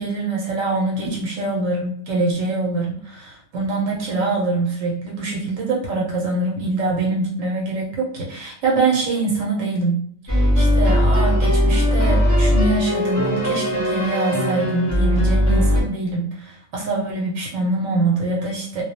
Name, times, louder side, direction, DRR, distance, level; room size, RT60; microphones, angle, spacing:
voice 1, 0.0-18.8, right 2 dB, 75° right, -2 dB, 1.0 m, -24 dB
sound 1, 10.3-15.8, equal, 20° left, 0.5 m, -18 dB
2.3 x 2.1 x 2.8 m, 0.64 s
omnidirectional pair, 1.4 m